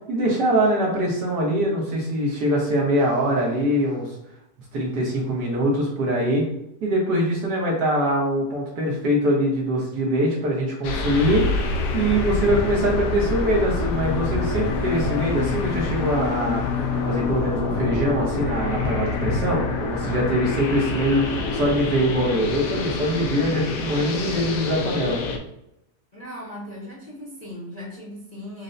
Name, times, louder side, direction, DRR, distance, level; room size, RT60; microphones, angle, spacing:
voice 1, 0.1-4.1 4.7-6.5 6.8-16.6 17.0-25.2, equal, 75° right, -3 dB, 1.8 m, -23 dB
sound 1, 10.8-25.4, left 3 dB, 80° left, 1.2 m, -26 dB
voice 2, 26.1-28.6, left 1 dB, 35° left, -5 dB, 0.7 m, -38 dB
6.2 x 2.2 x 2.6 m, 0.83 s
omnidirectional pair, 1.8 m